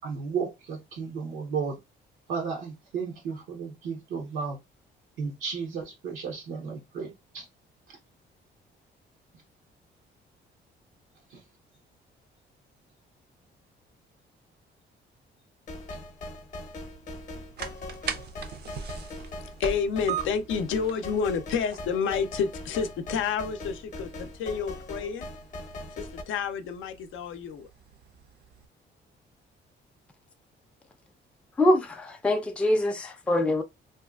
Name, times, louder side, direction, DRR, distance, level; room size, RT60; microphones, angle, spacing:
voice 1, 0.0-1.8 2.3-4.6 5.2-7.4 7.9-8.0 11.3-11.4, right 5 dB, 90° right, 0.8 m, -34 dB
sound 1, 15.7-26.2, left 2 dB, 40° left, 0.7 m, -41 dB
sound 2, 16.9-28.7, right 7 dB, 55° right, 0.5 m, -42 dB
voice 2, 19.6-25.3 25.9-27.7, left 6 dB, 80° left, 0.5 m, -29 dB
voice 3, 31.6-33.6, left 1 dB, 5° left, 0.4 m, -24 dB
2.6 x 2.3 x 2.3 m
cardioid pair, 90°, 20 cm